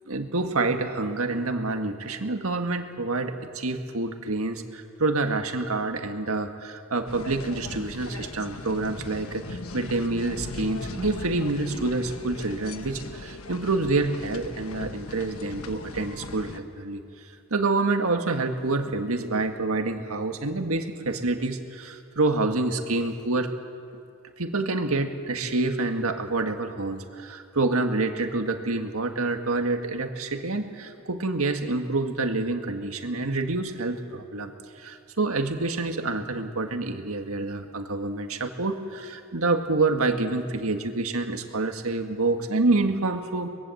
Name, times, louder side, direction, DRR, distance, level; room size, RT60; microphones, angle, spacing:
voice 1, 0.1-17.0 17.5-23.5 24.4-34.5 34.8-43.5, right 3 dB, 90° right, 5 dB, 1.8 m, -27 dB
sound 1, 7.1-16.6, left 2 dB, 85° left, 1.2 m, -39 dB
24.0 x 20.5 x 7.9 m, 2.4 s
head